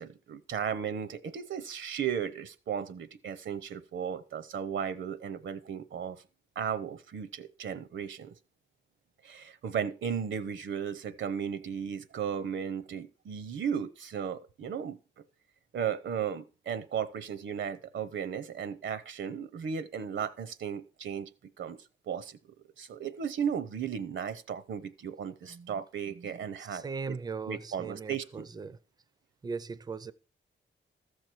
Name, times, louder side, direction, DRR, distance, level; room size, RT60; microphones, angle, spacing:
voice 1, 0.0-6.2 6.6-8.3 9.2-15.0 15.7-21.3 21.6-21.8 22.1-22.4 22.8-27.2 27.5-28.5, right 7 dB, 75° right, 0.7 m, -35 dB
voice 2, 26.6-28.8 29.4-30.1, right 5 dB, 20° right, 0.4 m, -38 dB
14.0 x 6.6 x 4.4 m
wide cardioid pair, 170°, 20 cm